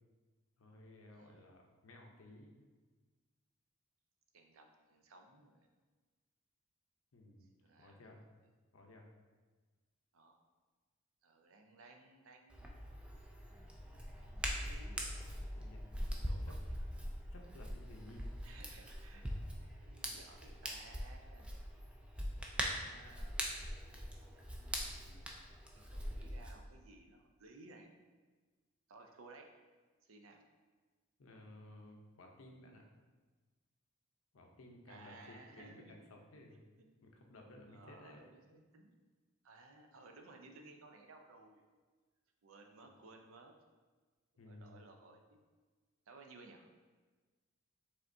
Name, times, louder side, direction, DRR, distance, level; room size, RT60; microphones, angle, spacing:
voice 1, 0.6-2.5 7.1-8.2 8.7-9.1 14.2-14.3 15.5-16.5 17.3-18.3 24.8-25.3 26.1-26.3 31.2-32.8 34.3-36.7 37.0-38.2 42.8-42.9 44.4-44.8, left 1 dB, 70° left, 2 dB, 0.6 m, -57 dB
voice 2, 1.1-1.5 4.3-5.7 7.4-8.2 10.1-10.4 11.2-12.7 14.2-15.1 16.3-16.6 18.4-19.3 19.5-21.5 22.6-23.5 25.5-27.9 28.9-29.5 30.0-30.4 34.9-36.1 37.7-38.9 39.4-41.6 42.4-43.5 44.5-45.4 46.1-46.7, right 3 dB, 70° right, 3 dB, 0.5 m, -59 dB
Hands, 12.5-26.5, equal, 5° right, 0.3 m, -42 dB
5.1 x 3.5 x 2.6 m, 1.4 s
head